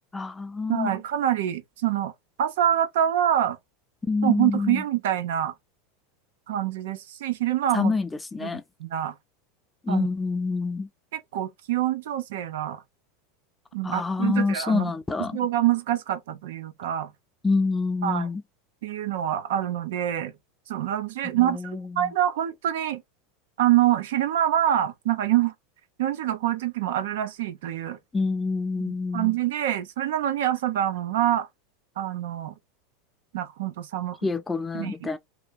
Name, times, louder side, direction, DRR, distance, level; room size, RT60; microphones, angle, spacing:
voice 1, 0.1-0.9 4.0-4.8 7.7-8.6 9.8-10.9 13.8-15.4 17.4-18.4 21.4-22.1 28.1-29.3 34.2-35.2, left 3 dB, 10° left, 0.4 m, -27 dB
voice 2, 0.7-2.1 2.4-3.6 4.2-5.5 6.5-7.9 8.4-9.1 9.9-10.1 11.1-12.8 13.7-14.9 15.2-17.1 18.0-18.3 18.8-20.3 20.7-21.6 22.0-23.0 23.6-25.5 26.0-28.0 28.8-31.5 32.0-32.5 33.3-34.2 34.7-35.1, right 12 dB, 80° right, 0.7 m, -25 dB
2.9 x 2.7 x 3.6 m
supercardioid pair, 150°, 0 cm